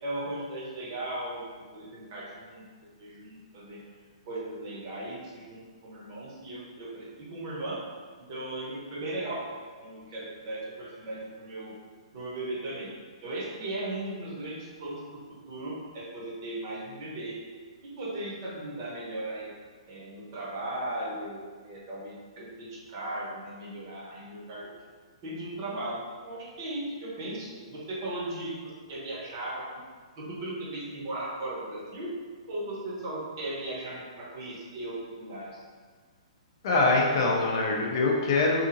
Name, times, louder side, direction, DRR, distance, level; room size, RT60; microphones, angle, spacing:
voice 1, 0.0-3.8 4.3-7.8 8.3-9.4 9.8-11.7 12.1-12.9 13.2-17.4 17.8-19.5 19.9-24.7 25.2-29.8 30.2-32.1 32.5-35.6, right 1 dB, 40° right, -5 dB, 0.8 m, -37 dB
voice 2, 36.6-38.7, left 3 dB, 45° left, -2 dB, 0.5 m, -24 dB
2.8 x 2.5 x 2.5 m, 1.6 s
hypercardioid pair, 165°, 3 cm